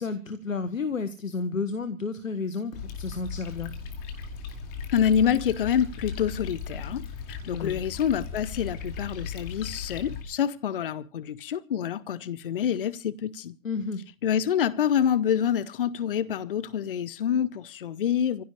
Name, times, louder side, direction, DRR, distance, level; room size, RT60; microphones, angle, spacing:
voice 1, 0.0-3.7 7.4-7.8 13.6-14.0, left 4 dB, 70° left, 1.4 m, -31 dB
sound 1, 2.7-10.2, left 5 dB, 20° left, 2.4 m, -37 dB
voice 2, 4.9-13.5 14.2-18.4, left 9 dB, 40° left, 0.8 m, -27 dB
29.0 x 16.0 x 2.4 m
figure-of-eight pair, 125°, 41 cm